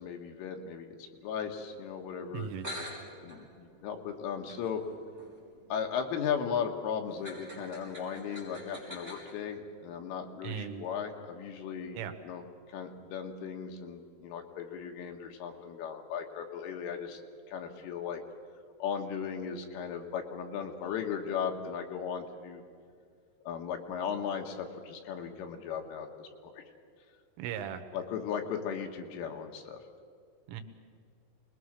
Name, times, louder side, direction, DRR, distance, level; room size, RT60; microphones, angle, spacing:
voice 1, 0.0-2.5 3.2-4.8 5.7-12.4 12.7-17.2 17.5-18.2 18.8-22.6 23.5-26.6 27.9-29.8, left 7 dB, 85° left, 4 dB, 4.0 m, -37 dB
sound 1, 2.3-2.4 2.6-9.3, equal, 10° right, 5.6 m, -47 dB
voice 2, 2.3-2.7 10.4-10.9 12.0-12.1 27.4-27.8 30.5-30.6, right 9 dB, 85° right, 8 dB, 3.6 m, -37 dB
25.5 x 20.5 x 6.4 m, 2.2 s
omnidirectional pair, 5.7 m